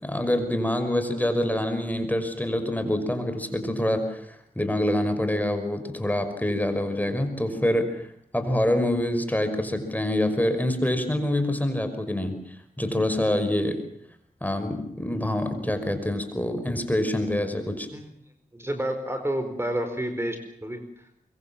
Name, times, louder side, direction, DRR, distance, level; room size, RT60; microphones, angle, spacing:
voice 1, 0.0-8.0 8.3-12.4 12.8-13.8 14.4-17.9, left 1 dB, 10° left, 8 dB, 5.7 m, -26 dB
voice 2, 18.5-20.8, right 1 dB, 15° right, 7 dB, 4.6 m, -29 dB
24.5 x 23.5 x 7.4 m, 0.71 s
cardioid pair, 50°, 14 cm